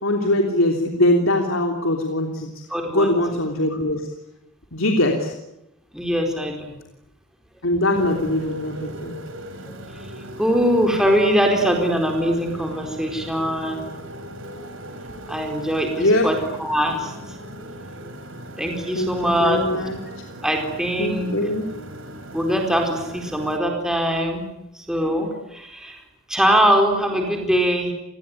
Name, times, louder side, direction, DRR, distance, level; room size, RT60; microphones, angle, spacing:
voice 1, 0.0-2.5 2.9-4.1 4.7-5.3 7.6-9.1 16.0-16.2 18.9-20.0 21.0-21.7, left 1 dB, 75° left, 2 dB, 3.3 m, -21 dB
voice 2, 2.7-3.1 5.9-6.7 10.4-13.9 15.3-17.1 18.6-19.6 20.4-21.4 22.3-24.5 24.9-26.0 26.3-27.9, equal, 5° right, 2 dB, 4.3 m, -22 dB
Motorcycle, 7.9-23.6, right 1 dB, 70° right, 4.3 m, -38 dB
29.0 x 20.5 x 9.9 m, 0.87 s
head